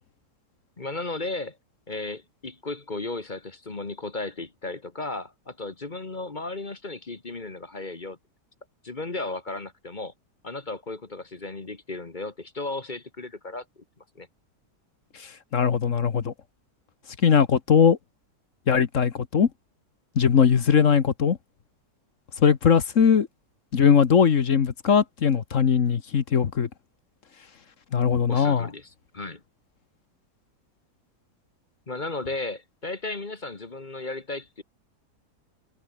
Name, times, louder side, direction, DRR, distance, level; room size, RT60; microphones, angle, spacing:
voice 1, 0.8-1.6 1.9-8.2 8.8-10.1 10.4-13.8 14.1-14.3 28.3-29.4 31.9-34.6, left 2 dB, 30° left, 1.6 m, -35 dB
voice 2, 15.5-16.3 17.2-18.0 18.7-19.5 20.1-21.4 22.4-23.3 23.7-26.7 27.9-28.7, left 7 dB, 50° left, 1.5 m, -20 dB
omnidirectional pair, 1.8 m